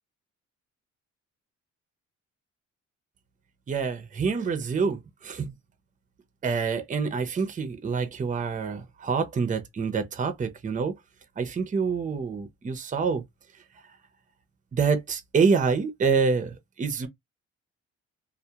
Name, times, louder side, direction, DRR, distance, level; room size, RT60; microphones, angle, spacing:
voice 1, 3.7-5.5 6.4-10.9 11.4-13.2 14.7-17.1, right 5 dB, 25° right, 0.6 m, -26 dB
2.2 x 2.0 x 2.8 m
cardioid pair, 90°, 30 cm